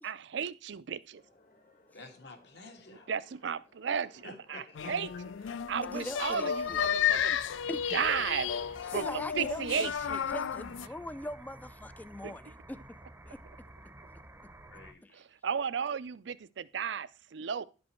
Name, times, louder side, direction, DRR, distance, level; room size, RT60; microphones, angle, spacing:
voice 1, 0.0-1.2 3.1-5.1 5.7-7.4 7.9-8.5 8.9-9.1 9.4-10.2 12.2-12.4 15.1-17.6, right 7 dB, 65° right, 0.5 m, -34 dB
sound 1, 1.1-6.8, left 2 dB, 45° left, 1.4 m, -62 dB
voice 2, 1.9-3.1 4.2-4.9 5.5-5.6 14.7-15.1, left 3 dB, 65° left, 1.8 m, -50 dB
sound 2, 4.8-10.9, left 8 dB, 85° left, 0.4 m, -32 dB
voice 3, 5.8-6.9 7.7-8.1 8.9-13.0 13.3-13.4 15.0-15.2, left 1 dB, 10° left, 0.3 m, -42 dB
sound 3, 6.6-14.9, right 1 dB, 10° right, 0.7 m, -52 dB
11.0 x 5.3 x 4.4 m
head